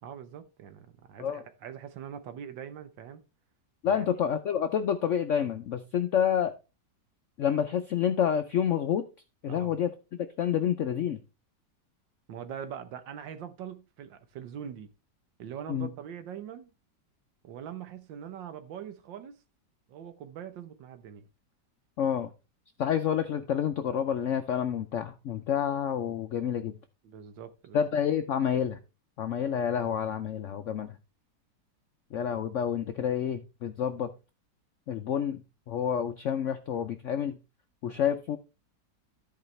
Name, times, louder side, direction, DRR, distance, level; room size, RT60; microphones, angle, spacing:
voice 1, 0.0-3.2 3.8-4.1 9.5-9.8 12.3-14.9 15.4-16.7 17.4-19.4 19.9-21.3 27.0-27.8 37.8-38.0, right 8 dB, 85° right, 1.6 m, -42 dB
voice 2, 3.8-6.5 7.4-9.1 9.4-9.9 10.4-11.2 15.7-15.9 22.0-22.3 22.8-26.7 27.7-28.8 29.2-31.0 32.1-34.1 34.9-37.4 37.8-38.4, left 8 dB, 75° left, 0.6 m, -28 dB
13.5 x 4.8 x 3.2 m
omnidirectional pair, 1.9 m